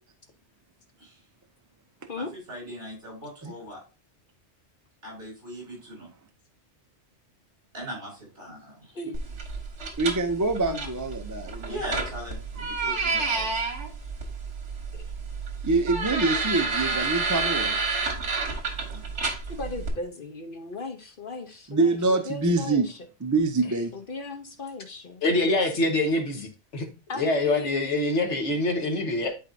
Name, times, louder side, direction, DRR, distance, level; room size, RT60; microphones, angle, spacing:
voice 1, 2.1-3.8 5.0-6.1 7.7-8.9 11.7-13.6 18.9-19.1, equal, 60° right, 4.9 m, -39 dB
sound 1, 9.1-19.9, right 4 dB, 75° right, 1.7 m, -30 dB
voice 2, 10.0-11.8 15.6-17.8 21.7-22.9 23.2-23.9, right 3 dB, 25° right, 0.4 m, -25 dB
voice 3, 19.5-23.1 23.9-25.9 27.1-27.9 28.5-28.6, left 3 dB, 50° left, 1.0 m, -37 dB
voice 4, 25.2-26.9 27.2-29.3, left 2 dB, 90° left, 1.7 m, -25 dB
11.0 x 4.4 x 2.6 m
omnidirectional pair, 1.2 m